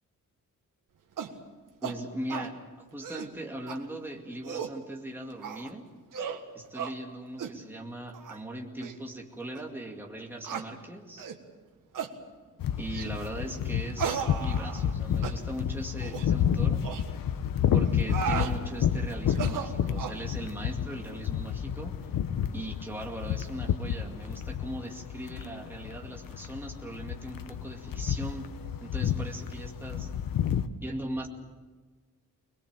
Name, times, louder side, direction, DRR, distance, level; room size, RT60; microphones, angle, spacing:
sound 1, 1.2-1.4 1.8-2.0 2.3-2.5 2.9-3.3 3.7-3.8 4.3-4.8 5.4-5.7 6.1-6.4 6.7-6.9 7.4-7.6 8.1-8.4 8.8-8.9 9.5-9.6 10.4-10.7 11.2-11.4 11.9-12.1 12.9-13.2 14.0-14.9 15.2-15.4 16.0-16.3 16.8-17.0 17.8-18.5 19.3-20.2, right 7 dB, 70° right, 1.7 m, -35 dB
voice 1, 1.8-2.5 2.9-5.9 6.5-11.2 12.8-16.9 17.7-22.0 22.5-28.5 28.8-30.1 30.8-31.3, right 1 dB, 5° right, 0 dB, 2.1 m, -39 dB
sound 2, 12.6-30.7, left 9 dB, 90° left, 1.1 m, -30 dB
22.0 x 21.5 x 7.4 m, 1.3 s
wide cardioid pair, 180°, 33 cm